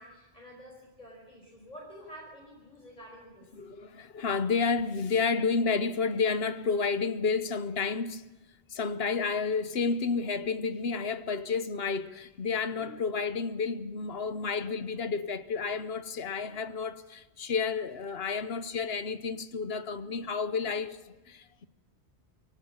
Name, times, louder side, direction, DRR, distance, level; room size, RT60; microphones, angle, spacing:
voice 1, 0.0-3.5, equal, 35° left, 5.0 m, -49 dB
voice 2, 3.5-8.3 8.7-21.7, left 5 dB, 65° left, 1.2 m, -31 dB
23.5 x 17.5 x 7.2 m
omnidirectional pair, 1.1 m